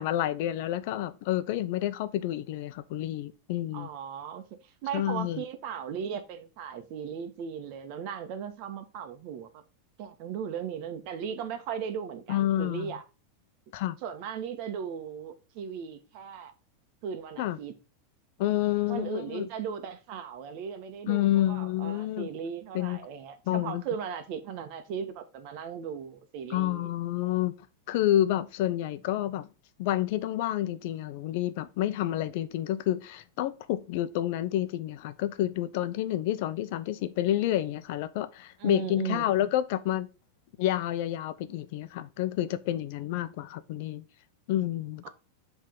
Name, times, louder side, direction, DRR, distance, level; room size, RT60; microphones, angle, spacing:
voice 1, 0.0-3.9 4.9-5.4 12.3-12.9 13.7-14.0 17.4-17.6 18.4-19.5 21.1-22.3 22.7-23.0 23.5-23.8 26.5-27.5 27.9-29.5 29.8-40.1 40.6-44.1 44.5-45.1, left 13 dB, 60° left, 0.8 m, -29 dB
voice 2, 3.7-9.6 10.0-13.0 14.0-16.5 17.0-17.7 18.9-26.9 38.6-39.5 45.0-45.1, right 7 dB, 50° right, 1.4 m, -37 dB
7.5 x 3.6 x 5.3 m
supercardioid pair, 135°, 0 cm